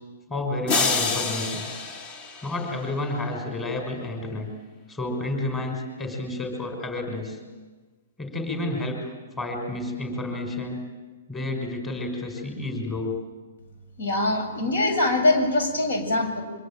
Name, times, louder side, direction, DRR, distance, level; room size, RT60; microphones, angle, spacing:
voice 1, 0.3-1.7 2.4-4.5 4.9-7.4 8.2-10.8 11.3-13.2, left 2 dB, 15° left, 3 dB, 5.9 m, -30 dB
sound 1, 0.7-3.0, left 4 dB, 50° left, 5.0 m, -27 dB
voice 2, 14.0-16.4, left 2 dB, 80° left, 6 dB, 7.2 m, -23 dB
24.5 x 23.5 x 9.2 m, 1.3 s
hypercardioid pair, 140°, 0 cm